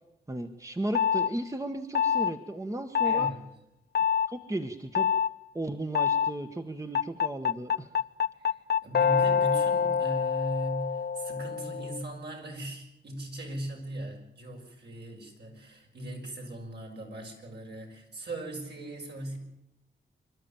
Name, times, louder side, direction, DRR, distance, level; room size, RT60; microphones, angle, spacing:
voice 1, 0.3-3.3 4.3-5.1 5.5-7.9, right 1 dB, 15° right, 6 dB, 1.5 m, -35 dB
sound 1, 1.0-1.3 2.0-2.3 3.0-3.3 4.0-4.3 5.0-5.3 6.0-6.3 7.0-12.0, left 7 dB, 60° left, 0.7 m, -26 dB
voice 2, 3.0-3.4 8.4-19.4, right 1 dB, 60° right, 0 dB, 6.1 m, -38 dB
26.5 x 12.5 x 8.9 m, 0.88 s
cardioid pair, 75°, 19 cm